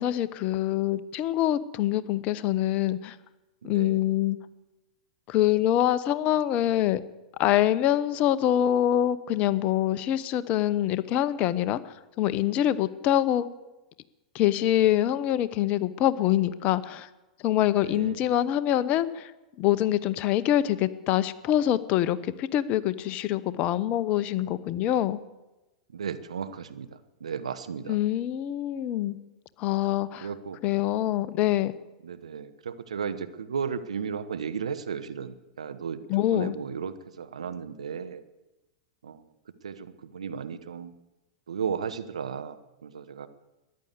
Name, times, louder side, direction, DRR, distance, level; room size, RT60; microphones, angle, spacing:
voice 1, 0.0-3.1 3.6-4.4 5.3-7.0 7.4-13.5 14.3-17.1 17.4-19.3 19.6-25.2 27.9-29.2 29.6-30.3 30.6-31.7 36.1-36.5, left 12 dB, 40° left, 15 dB, 0.9 m, -25 dB
voice 2, 3.6-4.0 17.8-18.2 25.9-28.0 29.7-29.8 30.2-30.6 32.0-38.2 39.0-39.2 39.6-40.9 41.5-43.3, right 6 dB, 75° right, 11 dB, 1.0 m, -35 dB
14.0 x 10.5 x 8.1 m, 1.0 s
figure-of-eight pair, 95°, 3 cm